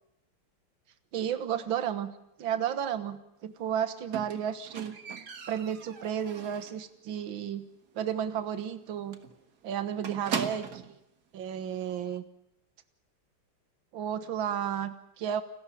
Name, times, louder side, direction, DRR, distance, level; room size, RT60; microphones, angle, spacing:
voice 1, 1.1-2.1 2.4-5.0 5.5-7.7 8.0-9.2 9.6-11.0 11.3-12.3 13.9-15.4, right 9 dB, 65° right, 12 dB, 2.1 m, -32 dB
Squeak, 4.1-6.9 7.2-7.6 7.9-8.0 8.4-8.5 8.7-8.9 9.1-11.0 11.8-11.9, right 7 dB, 50° right, 1.9 m, -38 dB
29.5 x 13.0 x 9.9 m, 0.79 s
omnidirectional pair, 2.4 m